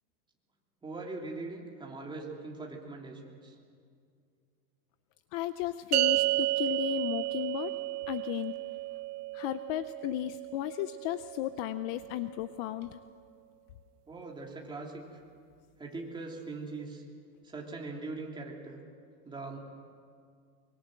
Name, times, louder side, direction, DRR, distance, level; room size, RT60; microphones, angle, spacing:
voice 1, 0.8-3.6 14.1-15.1 15.8-17.0 17.4-18.8 19.2-19.6, right 3 dB, 10° right, -1 dB, 3.1 m, -41 dB
voice 2, 5.3-7.7 8.1-8.6 9.3-13.0, left 14 dB, 40° left, 12 dB, 0.6 m, -35 dB
sound 1, 5.9-12.5, right 19 dB, 80° right, 0.8 m, -33 dB
24.0 x 23.5 x 7.8 m, 2.2 s
supercardioid pair, 155°, 46 cm